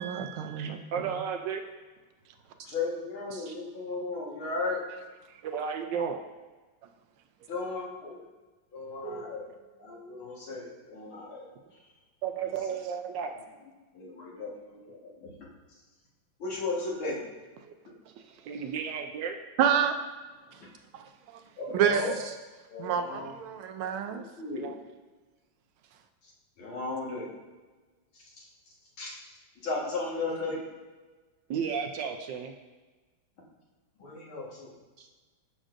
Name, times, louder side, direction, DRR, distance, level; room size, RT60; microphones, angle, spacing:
voice 1, 0.0-1.2 19.6-20.0 20.9-21.1 21.7-22.2 22.8-24.2, right 8 dB, 90° right, 8 dB, 1.5 m, -28 dB
voice 2, 0.6-1.6 3.3-3.6 5.4-6.2 9.0-9.3 12.2-13.3 17.6-17.7 18.5-19.4 21.9-22.3 24.5-24.8 31.5-32.5 35.0-35.1, right 7 dB, 75° right, 4 dB, 1.1 m, -34 dB
voice 3, 2.6-4.8 7.5-8.2 8.7-9.4 9.8-11.5 13.9-15.3 16.4-17.2 21.6-22.2 22.7-23.4 24.1-24.7 26.6-27.3 29.0-29.1 29.6-30.6 34.0-34.7, left 3 dB, 75° left, -4 dB, 2.4 m, -35 dB
11.0 x 6.3 x 2.6 m, 1.3 s
omnidirectional pair, 2.3 m